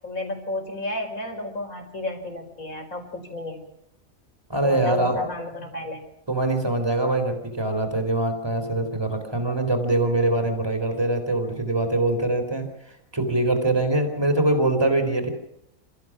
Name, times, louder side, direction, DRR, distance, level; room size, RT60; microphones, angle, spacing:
voice 1, 0.0-3.6 4.6-6.1, left 2 dB, 75° left, 4 dB, 5.2 m, -32 dB
voice 2, 4.5-5.3 6.3-12.7 13.1-15.3, right 2 dB, 15° right, 5 dB, 3.8 m, -23 dB
28.0 x 15.0 x 6.3 m, 0.80 s
omnidirectional pair, 1.5 m